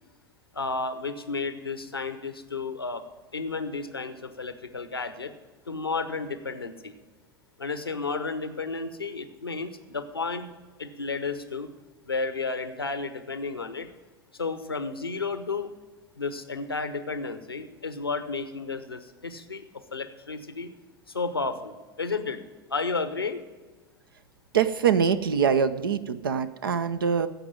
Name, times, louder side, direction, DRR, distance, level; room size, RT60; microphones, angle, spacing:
voice 1, 0.5-3.0 3.3-5.3 5.7-6.9 7.6-10.5 10.8-11.7 12.0-13.9 14.3-15.7 16.2-20.8 21.1-22.4 22.7-23.4, left 4 dB, 85° left, 10 dB, 0.9 m, -32 dB
voice 2, 24.5-27.3, right 7 dB, 70° right, 11 dB, 0.6 m, -24 dB
15.0 x 5.2 x 8.9 m, 1.3 s
figure-of-eight pair, 80°, 12 cm